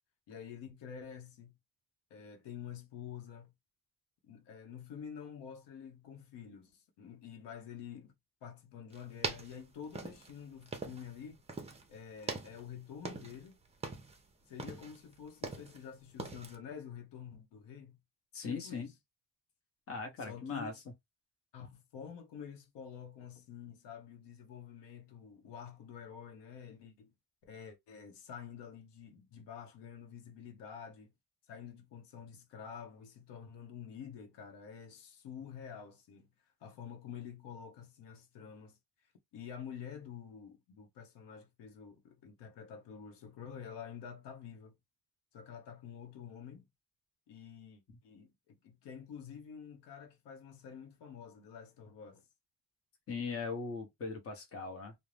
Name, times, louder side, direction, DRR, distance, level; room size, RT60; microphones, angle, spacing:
voice 1, 0.3-1.5 2.1-3.5 4.2-8.1 8.4-11.4 11.9-13.6 14.5-18.0 18.5-18.9 20.2-20.8 21.5-27.1 27.5-31.1 31.5-36.3 36.6-38.8 39.3-44.8 45.3-46.6 47.3-52.3, left 7 dB, 90° left, 0.8 m, -48 dB
sound 1, 8.9-11.2 11.5-11.9 12.2-13.5 13.7-14.2 14.6-15.8 16.2-16.6, right 4 dB, 15° right, 0.4 m, -42 dB
voice 2, 18.3-18.9 19.9-20.7 53.1-55.0, left 4 dB, 35° left, 0.8 m, -39 dB
2.5 x 2.1 x 3.2 m
cardioid pair, 140°, 41 cm